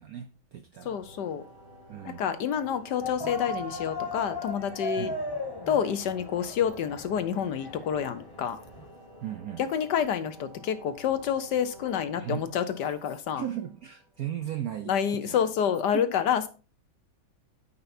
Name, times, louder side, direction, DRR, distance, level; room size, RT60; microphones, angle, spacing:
voice 1, 0.0-1.0 1.9-2.2 5.0-5.2 9.2-9.6 12.1-12.4 13.3-15.4 15.9-16.1, right 10 dB, 75° right, 0.8 m, -36 dB
voice 2, 0.8-1.4 2.0-5.1 5.7-8.6 9.6-13.4 14.9-16.5, left 8 dB, 65° left, 1.2 m, -28 dB
sound 1, 0.9-14.4, right 1 dB, 30° right, 3.3 m, -51 dB
sound 2, 3.0-8.9, left 2 dB, 25° left, 0.5 m, -37 dB
14.0 x 5.6 x 2.6 m
omnidirectional pair, 2.2 m